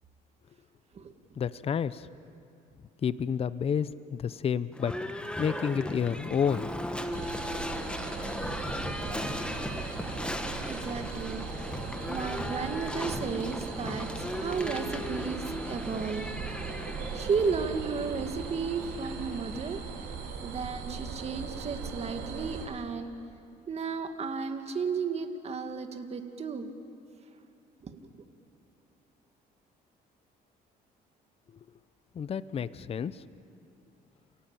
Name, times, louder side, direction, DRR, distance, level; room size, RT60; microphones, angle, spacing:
voice 1, 1.4-2.1 3.0-4.9 5.4-6.7 32.1-33.2, left 7 dB, 35° left, 16 dB, 0.7 m, -30 dB
Livestock farm animals working animals / Bell, 4.7-20.6, left 1 dB, 5° left, 1.6 m, -37 dB
sound 1, 7.1-22.7, right 6 dB, 85° right, 4.0 m, -39 dB
voice 2, 10.6-11.5 12.1-16.3 17.1-19.8 20.4-23.1 23.7-26.7 27.8-28.0, right 5 dB, 40° right, 6 dB, 2.0 m, -33 dB
29.0 x 17.0 x 9.0 m, 2.6 s
cardioid pair, 110°, 17 cm